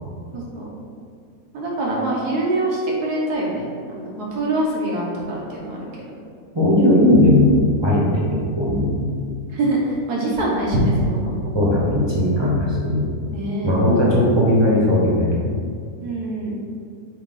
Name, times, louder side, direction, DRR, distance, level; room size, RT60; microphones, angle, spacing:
voice 1, 0.3-0.6 1.5-6.0 9.5-11.6 13.3-13.7 16.0-16.6, right 1 dB, 90° right, -4 dB, 1.7 m, -24 dB
voice 2, 6.5-9.0 11.5-13.1 13.6-15.3, left 1 dB, 20° right, -6 dB, 1.0 m, -17 dB
8.3 x 3.0 x 3.9 m, 2.2 s
omnidirectional pair, 1.6 m